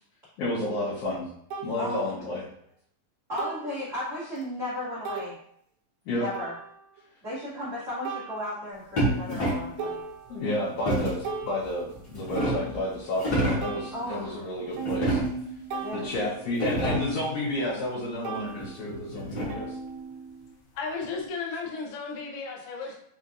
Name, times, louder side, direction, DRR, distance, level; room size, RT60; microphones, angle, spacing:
voice 1, 0.4-1.2 1.6-2.4 6.1-6.3 10.3-15.2 15.9-19.8, left 1 dB, 70° left, -8 dB, 2.1 m, -31 dB
sound 1, 0.7-0.8 1.5-1.7 3.4-3.8 4.4-4.5 5.1-5.3 6.3-7.0 8.1-8.9 9.4-9.5 9.8-10.6 11.0-13.2 13.6-18.0 18.2-20.5, right 5 dB, 75° right, 1.8 m, -39 dB
voice 2, 1.7-2.4 3.3-5.4 6.2-6.5 7.2-10.0 13.9-14.4 15.8-16.1, left 1 dB, 90° right, -11 dB, 0.6 m, -35 dB
sound 2, 9.0-9.8 10.9-11.3 11.9-12.8 13.1-13.8 14.8-15.6 16.1-16.2 16.5-17.2 18.6-19.8, right 1 dB, 55° left, 1.2 m, -28 dB
voice 3, 20.7-22.9, left 4 dB, 90° left, -1 dB, 1.2 m, -34 dB
5.4 x 2.5 x 2.5 m, 0.67 s
omnidirectional pair, 3.6 m